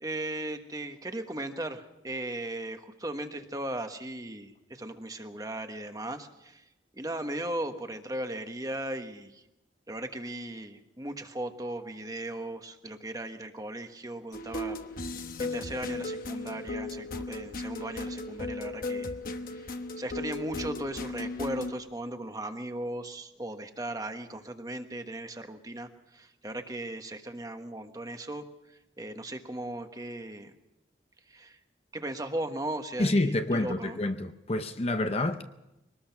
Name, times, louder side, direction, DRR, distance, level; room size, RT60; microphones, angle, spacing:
voice 1, 0.0-6.6 6.9-9.4 9.9-19.1 19.5-28.4 29.0-30.5 31.3-31.6 31.9-34.0, right 1 dB, 20° right, 1.3 m, -37 dB
sound 1, 14.3-21.7, left 2 dB, 50° left, 1.1 m, -36 dB
voice 2, 33.0-35.4, left 2 dB, 35° left, 0.7 m, -28 dB
23.5 x 19.5 x 5.9 m
head